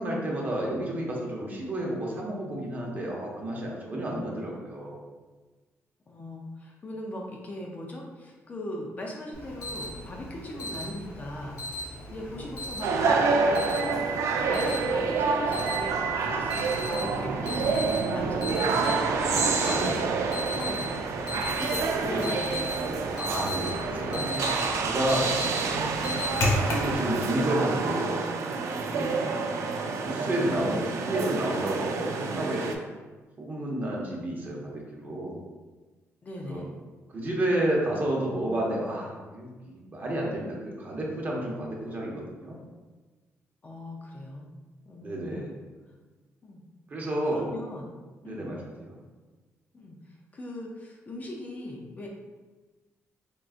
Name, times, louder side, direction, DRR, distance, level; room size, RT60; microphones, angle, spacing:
voice 1, 0.0-5.0 10.5-10.8 12.3-12.4 19.1-20.5 22.0-22.2 23.2-24.6 24.8-25.4 26.7-28.3 28.8-29.2 29.9-32.7 33.4-35.4 36.4-36.6 37.1-42.6 45.0-45.5 46.9-47.5 48.2-49.0, right 1 dB, 35° right, -2 dB, 0.8 m, -31 dB
voice 2, 6.1-19.2 20.5-21.0 21.6-23.5 25.7-26.2 29.1-29.4 36.2-36.7 43.6-44.5 44.9-45.4 46.4-46.6 47.2-47.9 48.2-48.5 49.7-52.1, left 1 dB, 30° left, -1 dB, 0.5 m, -39 dB
Alarm, 9.3-26.9, left 1 dB, 80° left, 1.1 m, -35 dB
sound 1, 12.8-32.8, right 4 dB, 70° right, 0.4 m, -28 dB
3.7 x 3.6 x 2.4 m, 1.3 s
cardioid pair, 135°, 5 cm